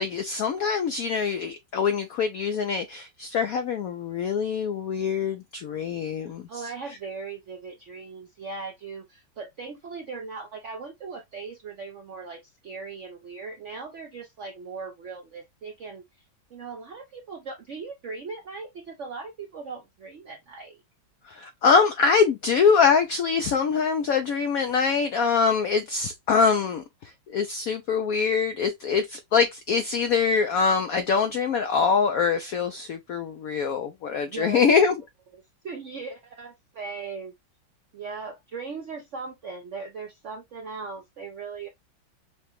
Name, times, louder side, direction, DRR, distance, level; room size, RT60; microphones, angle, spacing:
voice 1, 0.0-6.6 21.2-35.0, left 5 dB, 80° left, 0.7 m, -24 dB
voice 2, 6.5-16.0 16.5-20.8 34.2-34.8 35.3-37.3 37.9-41.7, right 4 dB, 75° right, 0.6 m, -38 dB
5.8 x 2.2 x 2.9 m
omnidirectional pair, 2.1 m